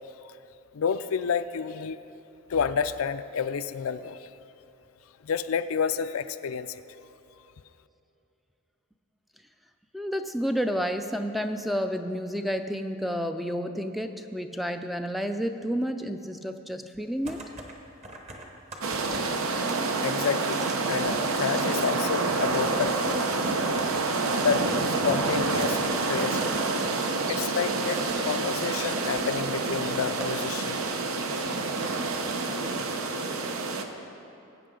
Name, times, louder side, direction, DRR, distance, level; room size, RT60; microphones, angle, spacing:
voice 1, 0.7-2.0 2.5-4.3 5.2-6.8 19.2-19.3 20.0-23.4 24.1-25.8 26.1-26.5 26.9-30.9, left 6 dB, 80° left, 12 dB, 0.4 m, -30 dB
voice 2, 9.9-17.4, equal, ahead, 7 dB, 0.3 m, -30 dB
sound 1, 16.9-17.8 18.0-19.3 19.7-21.9 22.2-23.0 23.3-23.4 23.7-24.0 24.3-24.4 25.1-25.3 25.8-26.6 27.5-27.6 27.9-28.2 28.7-28.8 29.0-29.3 29.5-29.6 30.2-30.3, right 2 dB, 30° right, 1.1 m, -41 dB
sound 2, 18.8-33.8, right 3 dB, 80° right, 0.8 m, -28 dB
20.0 x 9.0 x 3.8 m, 2.9 s
head